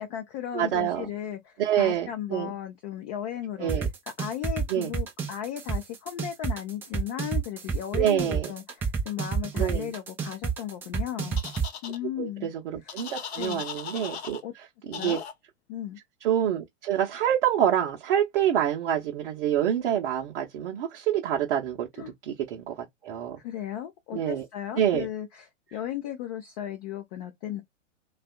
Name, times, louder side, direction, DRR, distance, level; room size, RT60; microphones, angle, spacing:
voice 1, 0.0-3.9 4.2-11.4 11.8-12.5 13.4-13.6 14.4-14.5 15.0-15.2 15.7-16.0 22.0-22.1 23.4-27.6, left 11 dB, 30° left, 0.7 m, -35 dB
voice 2, 0.5-1.1 1.6-2.5 3.6-3.9 4.7-4.9 7.9-8.5 9.5-9.9 12.2-14.4 14.9-15.2 16.2-21.9 22.3-22.7 23.0-23.4 24.1-24.4 24.8-25.1, right 10 dB, 45° right, 0.9 m, -26 dB
sound 1, 3.7-11.7, right 6 dB, 5° right, 0.4 m, -28 dB
sound 2, 11.4-12.0 12.9-14.4 14.9-15.3, left 8 dB, 55° left, 0.9 m, -38 dB
3.4 x 2.4 x 2.2 m
figure-of-eight pair, 100°, 38 cm